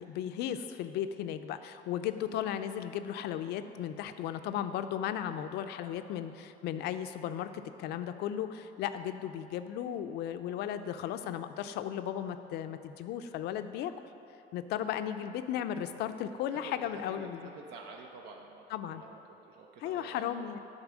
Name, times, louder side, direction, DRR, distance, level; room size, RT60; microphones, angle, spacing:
voice 1, 0.0-13.9 14.5-17.5 18.7-19.0 19.8-20.6, left 10 dB, 80° left, 10 dB, 0.4 m, -35 dB
voice 2, 16.5-20.5, right 4 dB, 80° right, 1 dB, 0.6 m, -49 dB
8.7 x 4.0 x 6.1 m, 2.9 s
cardioid pair, 110°, 17 cm